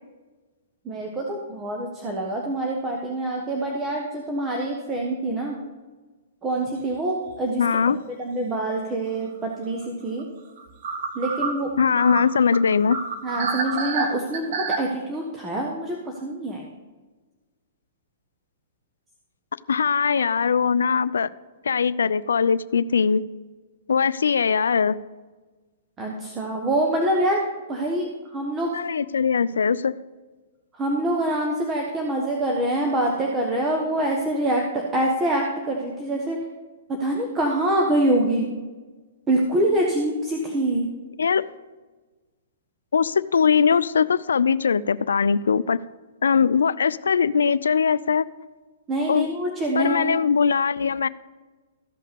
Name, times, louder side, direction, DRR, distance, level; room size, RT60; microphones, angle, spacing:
voice 1, 0.8-5.6 6.4-10.3 11.1-11.7 13.2-16.7 26.0-27.4 27.7-28.7 30.7-36.4 37.0-38.5 39.3-40.9 48.9-50.2, right 1 dB, 20° right, 0 dB, 1.4 m, -25 dB
sound 1, 6.7-6.9 7.3-7.4 9.8-9.9 10.2-10.3 10.6-14.8, right 4 dB, 60° right, 1.2 m, -28 dB
voice 2, 7.6-8.0 11.8-13.0 19.7-21.3 21.6-23.2 23.9-25.0 28.7-29.9 41.2-41.4 42.9-45.8 46.2-48.3 49.1-49.3 49.8-51.1, left 6 dB, 85° left, 17 dB, 0.4 m, -21 dB
14.5 x 5.6 x 5.2 m, 1.3 s
hypercardioid pair, 130°, 0 cm